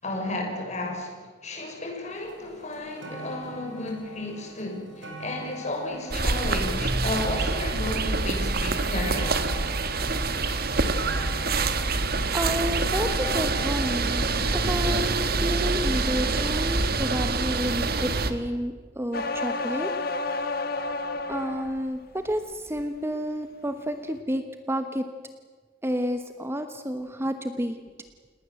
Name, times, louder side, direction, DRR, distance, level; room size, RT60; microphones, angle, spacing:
voice 1, 0.0-9.5, left 1 dB, 40° left, 1 dB, 6.4 m, -33 dB
sound 1, 2.3-2.4 2.7-15.9 16.7-16.8, left 1 dB, 80° right, 5.4 m, -43 dB
sound 2, 6.1-18.3, right 3 dB, 55° right, 1.7 m, -26 dB
voice 2, 12.3-14.3 14.5-19.9 20.3-20.4 21.3-25.1 25.8-27.8, equal, 15° right, 8 dB, 1.1 m, -30 dB
sound 3, 19.1-21.8 22.3-22.8, left 3 dB, 55° left, 1.5 m, -30 dB
29.0 x 19.5 x 7.7 m, 1.4 s
head